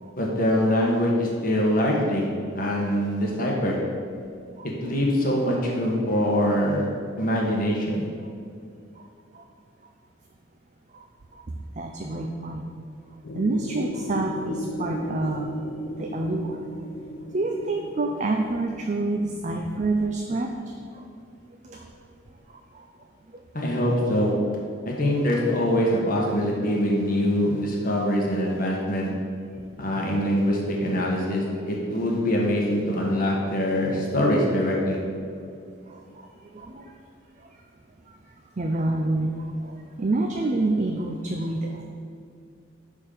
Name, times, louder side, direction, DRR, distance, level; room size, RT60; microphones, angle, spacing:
voice 1, 0.2-2.3 2.5-3.8 4.8-6.8 7.2-8.0 23.5-24.3 24.8-29.1 29.8-35.0, equal, 45° left, -3 dB, 1.3 m, -23 dB
voice 2, 11.8-12.7 13.3-15.5 16.0-16.6 17.3-20.5 20.9-21.0 21.6-21.9 22.5-22.9 24.8-24.9 35.9-36.9 38.6-39.3 39.6-41.8, right 2 dB, 35° right, 2 dB, 0.5 m, -28 dB
sound 1, 13.2-18.7, equal, 85° left, 0.8 m, -35 dB
11.0 x 3.8 x 6.8 m, 2.4 s
head